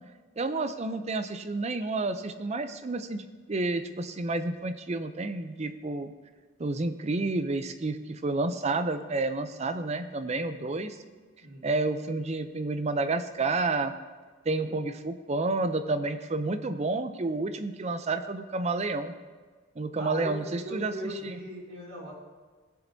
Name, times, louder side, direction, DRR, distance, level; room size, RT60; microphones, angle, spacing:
voice 1, 0.4-6.1 6.6-11.0 11.6-13.9 14.5-19.1 19.8-20.9 21.2-21.3, right 3 dB, 30° right, 9 dB, 0.5 m, -30 dB
voice 2, 7.0-7.3 11.1-11.8 19.9-22.1, equal, 80° right, -5 dB, 3.1 m, -40 dB
17.5 x 7.2 x 2.7 m, 1.4 s
head